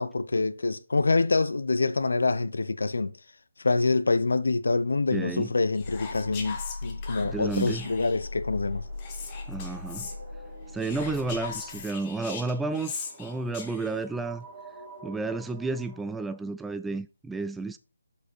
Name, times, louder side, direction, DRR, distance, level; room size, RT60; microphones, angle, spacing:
voice 1, 0.0-3.1 3.6-8.8, left 3 dB, 75° left, 0.7 m, -26 dB
voice 2, 5.1-5.5 7.2-7.9 9.5-10.1 10.7-14.5 15.0-17.8, right 3 dB, 5° right, 0.3 m, -31 dB
Whispering, 5.7-8.3 9.0-10.2 10.8-14.1, left 5 dB, 25° left, 1.4 m, -40 dB
sound 1, 5.8-11.8, left 3 dB, 55° left, 2.1 m, -39 dB
sound 2, 7.3-16.0, right 2 dB, 20° right, 3.6 m, -50 dB
6.8 x 5.0 x 4.5 m
figure-of-eight pair, 155°, 0 cm